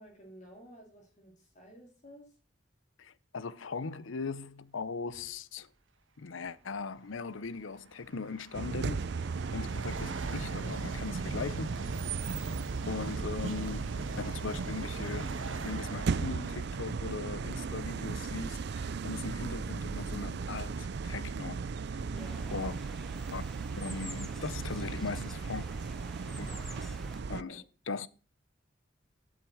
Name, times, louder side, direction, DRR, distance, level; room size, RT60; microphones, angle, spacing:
voice 1, 0.0-2.3 9.5-9.8 22.1-22.6 26.5-26.9 27.2-27.6, equal, 40° left, 2.9 m, -52 dB
voice 2, 3.0-5.7 6.2-9.0 9.5-12.0 12.9-15.3 15.6-21.6 22.5-22.8 23.3-23.4 23.8-25.7 26.4-26.5 27.3-28.1, left 4 dB, 90° left, 0.7 m, -39 dB
sound 1, 5.1-5.4 6.5-6.6 7.3-18.7 19.4-19.5 20.3-20.4 20.6-22.2, right 2 dB, 80° right, 1.5 m, -44 dB
sound 2, 8.5-27.4, right 5 dB, 60° right, 0.4 m, -36 dB
sound 3, 22.2-27.2, equal, ahead, 0.8 m, -49 dB
8.4 x 7.4 x 7.7 m
head